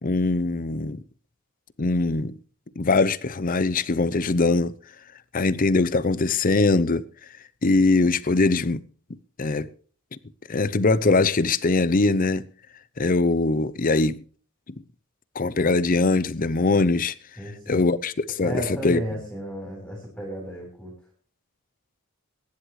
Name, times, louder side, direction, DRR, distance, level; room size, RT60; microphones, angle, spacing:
voice 1, 0.0-1.0 1.8-2.3 2.8-4.7 5.3-7.0 7.6-8.8 9.4-9.7 10.5-12.4 13.0-14.2 15.4-17.1 17.7-19.0, left 3 dB, 40° left, 0.6 m, -22 dB
voice 2, 17.4-17.8 18.4-20.9, equal, 5° left, 4.0 m, -34 dB
23.0 x 10.5 x 3.2 m
head